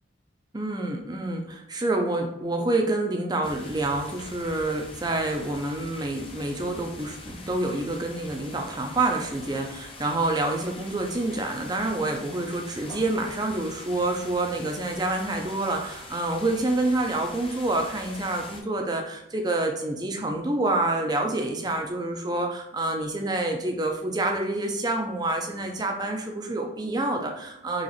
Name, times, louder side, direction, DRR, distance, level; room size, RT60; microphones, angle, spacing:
voice 1, 0.5-27.8, right 2 dB, 20° right, 2 dB, 0.5 m, -27 dB
sound 1, 3.4-18.6, left 2 dB, 30° left, 0.5 m, -43 dB
3.9 x 3.1 x 3.1 m, 0.83 s
head